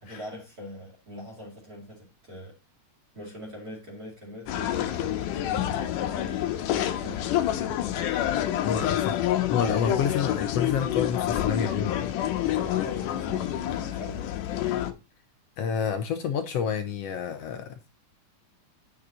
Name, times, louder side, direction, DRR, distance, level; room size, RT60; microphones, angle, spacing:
voice 1, 0.0-2.5 3.1-7.2 9.6-9.9 12.4-14.3, left 1 dB, 30° right, 2.4 m, -42 dB
sound 1, 4.5-14.9, left 12 dB, 85° left, 2.5 m, -28 dB
voice 2, 8.6-9.2 9.5-12.1 15.6-17.8, left 7 dB, 70° left, 1.6 m, -28 dB
9.8 x 5.9 x 4.0 m
omnidirectional pair, 3.6 m